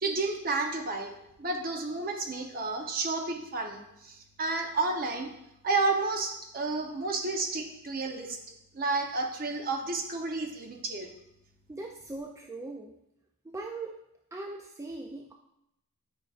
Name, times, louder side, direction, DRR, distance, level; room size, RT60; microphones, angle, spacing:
voice 1, 0.0-1.1 1.4-5.3 5.6-8.4 8.7-11.1, right 3 dB, 40° right, 4 dB, 0.8 m, -31 dB
voice 2, 11.7-13.0 13.4-14.0 14.3-15.3, right 2 dB, 15° right, 1 dB, 0.3 m, -40 dB
9.8 x 5.1 x 2.4 m, 0.82 s
head